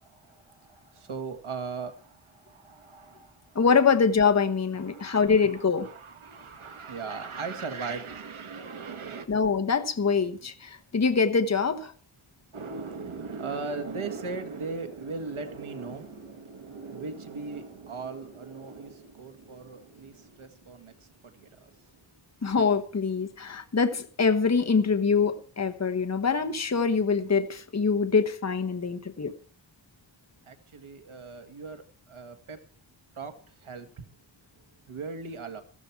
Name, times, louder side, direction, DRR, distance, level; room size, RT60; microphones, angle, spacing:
voice 1, 0.1-3.6 4.9-5.5 5.8-9.3 12.5-21.8 30.5-32.6 33.2-33.3 33.6-33.9 34.9-35.6, right 4 dB, 85° right, 2.0 m, -38 dB
voice 2, 3.5-5.9 9.3-11.9 22.4-29.3, left 5 dB, 35° left, 1.2 m, -24 dB
15.0 x 13.5 x 4.6 m
wide cardioid pair, 110°, 48 cm